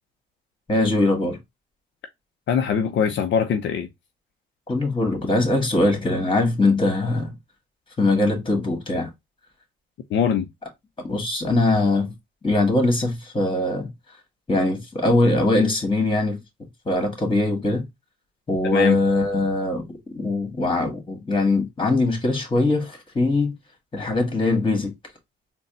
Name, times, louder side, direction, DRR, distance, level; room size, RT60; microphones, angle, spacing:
voice 1, 0.7-1.4 4.7-7.4 8.0-9.1 11.0-12.1 12.4-13.9 14.5-16.4 16.9-17.9 18.5-23.5 23.9-24.9, left 2 dB, 25° left, 1.8 m, -21 dB
voice 2, 2.5-3.9 10.1-10.5 18.7-19.0, left 7 dB, 65° left, 0.5 m, -22 dB
4.1 x 2.2 x 3.8 m
cardioid pair, 90°, 20 cm